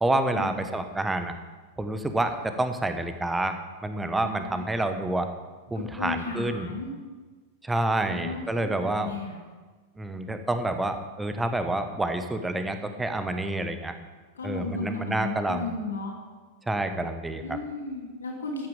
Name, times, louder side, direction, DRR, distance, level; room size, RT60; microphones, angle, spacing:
voice 1, 0.0-1.3 1.8-5.3 5.7-6.7 7.6-9.1 10.0-13.9 14.4-15.7 16.7-17.4, right 2 dB, 10° right, 8 dB, 1.1 m, -28 dB
voice 2, 4.2-4.7 5.7-6.9 8.1-9.4 14.3-16.1 17.4-18.7, left 4 dB, 70° left, 0 dB, 2.8 m, -35 dB
14.0 x 9.3 x 5.0 m, 1.3 s
figure-of-eight pair, 90°, 0 cm